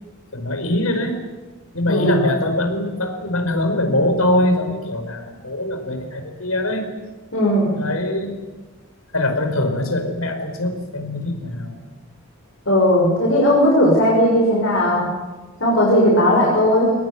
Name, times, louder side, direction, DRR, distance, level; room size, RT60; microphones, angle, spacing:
voice 1, 0.3-1.2 1.7-6.9 7.8-8.3 9.1-11.8, left 1 dB, 85° left, 6 dB, 5.0 m, -22 dB
voice 2, 1.9-2.2 7.3-7.7 12.6-15.1 15.6-16.9, equal, 65° left, -3 dB, 6.7 m, -16 dB
23.0 x 20.0 x 9.6 m, 1.2 s
head